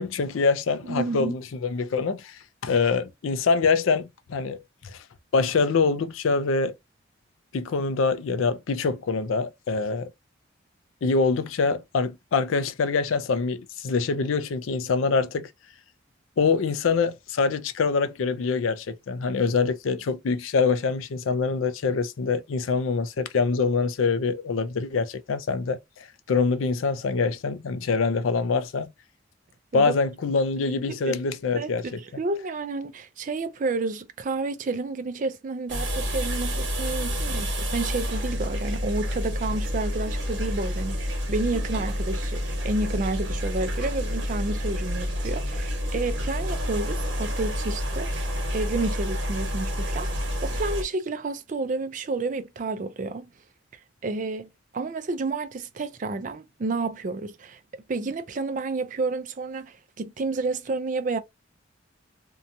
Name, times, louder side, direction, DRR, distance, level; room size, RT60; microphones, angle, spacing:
voice 1, 0.0-5.0 5.3-6.7 7.5-10.1 11.0-15.5 16.4-28.9 29.7-32.0, left 4 dB, 90° left, 0.4 m, -25 dB
voice 2, 0.9-1.4 29.7-29.9 30.9-31.2 31.6-31.7 32.0-50.1 50.4-53.3 54.0-61.2, right 3 dB, 40° right, 0.4 m, -30 dB
sound 1, 35.7-50.8, equal, 65° right, 1.1 m, -29 dB
2.7 x 2.2 x 2.6 m
head